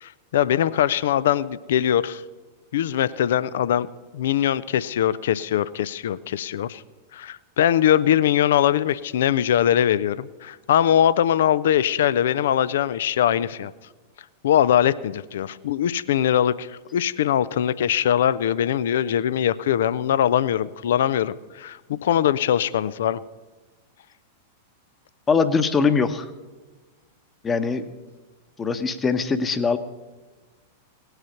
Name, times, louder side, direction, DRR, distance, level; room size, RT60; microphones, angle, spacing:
voice 1, 0.0-2.2 2.7-6.8 7.1-13.7 14.4-23.2, left 10 dB, 65° left, 18 dB, 0.4 m, -22 dB
voice 2, 25.3-26.3 27.4-27.9 28.6-29.8, left 5 dB, 20° left, 11 dB, 1.0 m, -22 dB
18.0 x 8.0 x 5.7 m, 1.3 s
figure-of-eight pair, 95°, 0 cm